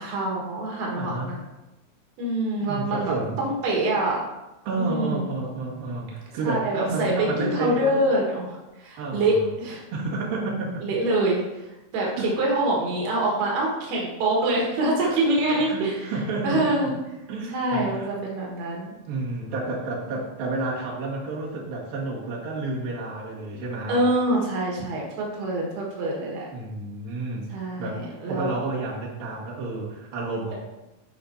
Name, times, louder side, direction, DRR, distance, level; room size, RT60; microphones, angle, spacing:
voice 1, 0.0-1.4 2.2-4.2 4.8-5.2 6.4-9.8 10.8-11.7 11.9-16.1 16.4-16.9 17.5-18.9 23.9-26.5 27.5-28.5, right 1 dB, 90° right, -3 dB, 3.5 m, -25 dB
voice 2, 1.0-1.4 2.6-3.5 4.6-8.0 9.0-9.5 9.9-10.8 12.2-12.4 15.0-16.9 17.3-18.1 19.1-24.1 26.5-27.5 27.8-28.0 28.3-30.5, right 3 dB, 70° right, -5 dB, 3.5 m, -30 dB
13.5 x 5.4 x 2.8 m, 1.0 s
omnidirectional pair, 4.4 m